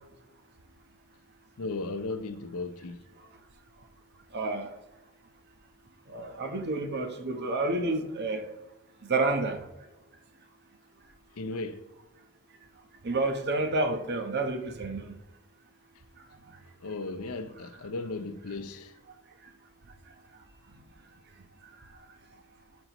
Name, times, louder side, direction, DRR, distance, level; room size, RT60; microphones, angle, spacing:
voice 1, 1.6-3.0 11.4-11.9 16.8-18.9, left 3 dB, 80° left, 0.7 m, -36 dB
voice 2, 4.3-4.7 6.1-8.4 9.1-9.6 13.0-15.1, right 2 dB, 50° right, 1.0 m, -29 dB
12.0 x 5.4 x 3.0 m
head